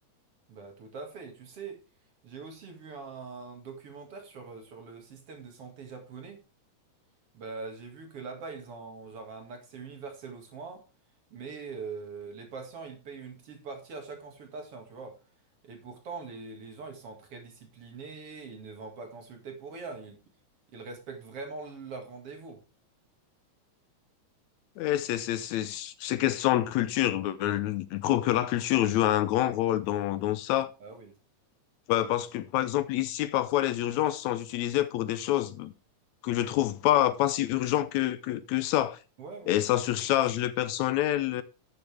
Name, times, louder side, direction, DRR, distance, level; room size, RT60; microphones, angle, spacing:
voice 1, 0.5-1.8 2.2-6.4 7.3-10.8 11.3-15.2 15.6-20.2 20.7-22.6 30.8-31.2 39.2-39.6, right 4 dB, 55° right, 2.8 m, -42 dB
voice 2, 24.8-30.7 31.9-35.7 36.2-39.0 39.5-41.4, left 13 dB, 80° left, 1.9 m, -27 dB
12.0 x 6.9 x 3.4 m
omnidirectional pair, 3.4 m